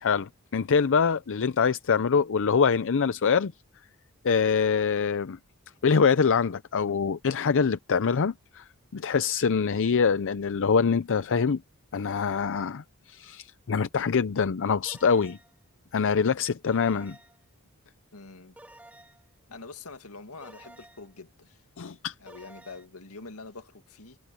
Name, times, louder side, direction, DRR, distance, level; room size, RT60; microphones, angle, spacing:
voice 1, 0.0-3.5 4.2-5.4 5.8-8.6 8.9-11.6 11.9-15.4 15.9-17.2 21.8-22.1, left 6 dB, 60° left, 0.5 m, -24 dB
sound 1, 14.9-15.6 16.7-17.4 18.6-19.3 20.4-21.2 22.3-22.9, right 1 dB, 5° right, 2.2 m, -51 dB
voice 2, 18.1-18.5 19.5-21.6 22.2-24.2, left 3 dB, 80° left, 2.1 m, -45 dB
head